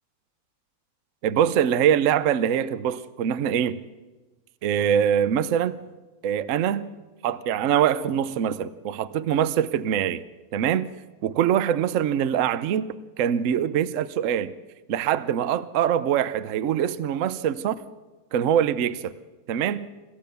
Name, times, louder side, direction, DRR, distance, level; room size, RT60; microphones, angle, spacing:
voice 1, 1.2-3.8 4.6-5.8 6.2-6.9 7.2-10.2 10.5-10.9 11.2-14.5 14.9-17.8 18.3-19.1 19.5-19.9, right 9 dB, 60° right, 0.8 m, -23 dB
26.5 x 14.5 x 6.9 m
omnidirectional pair, 2.1 m